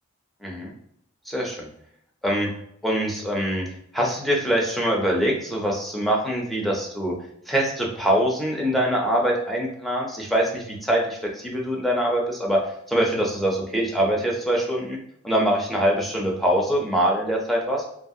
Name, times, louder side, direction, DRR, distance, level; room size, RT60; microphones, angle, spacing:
voice 1, 0.4-0.7 1.3-1.7 2.2-2.5 2.8-3.7 3.9-7.1 7.5-12.6 12.9-15.0 15.2-17.8, equal, ahead, -2 dB, 0.5 m, -23 dB
2.8 x 2.3 x 2.7 m, 0.70 s
head